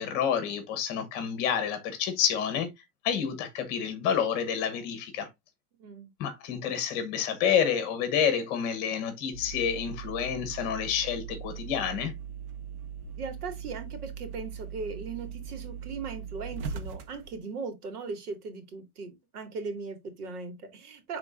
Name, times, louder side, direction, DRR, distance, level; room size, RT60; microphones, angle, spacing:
voice 1, 0.0-2.7 3.0-5.3 6.2-12.1, left 8 dB, 25° left, 1.0 m, -29 dB
voice 2, 5.8-6.1 13.1-21.2, right 4 dB, 90° right, 2.5 m, -38 dB
sound 1, 9.3-17.4, right 7 dB, 40° right, 0.9 m, -40 dB
10.5 x 3.8 x 2.5 m
supercardioid pair, 180°, 44 cm